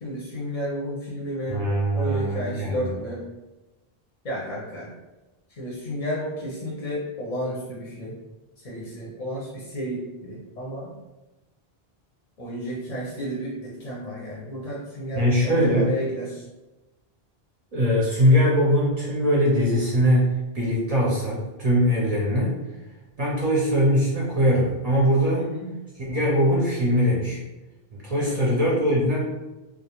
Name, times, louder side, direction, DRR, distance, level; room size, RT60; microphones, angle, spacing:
voice 1, 0.0-1.6 1.9-3.2 4.2-4.9 5.5-8.1 8.6-10.9 12.4-16.5 25.3-25.7 28.2-28.4, equal, 45° left, -5 dB, 0.6 m, -32 dB
voice 2, 1.5-2.9 15.1-15.9 17.7-22.6 23.2-25.5 26.1-27.4 27.9-29.2, equal, 45° right, -5 dB, 0.5 m, -21 dB
2.3 x 2.0 x 2.8 m, 1.1 s
omnidirectional pair, 1.0 m